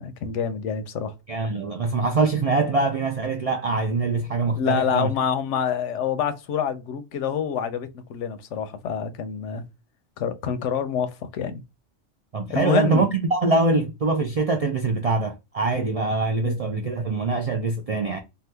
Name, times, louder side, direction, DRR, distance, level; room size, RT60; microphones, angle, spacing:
voice 1, 0.0-1.1 4.5-9.6 10.2-11.6 12.5-13.1 15.8-15.9 16.4-16.6, left 7 dB, 85° left, 0.9 m, -27 dB
voice 2, 1.3-5.1 12.3-18.2, right 3 dB, 60° right, 0.3 m, -23 dB
2.8 x 2.3 x 3.2 m
omnidirectional pair, 1.2 m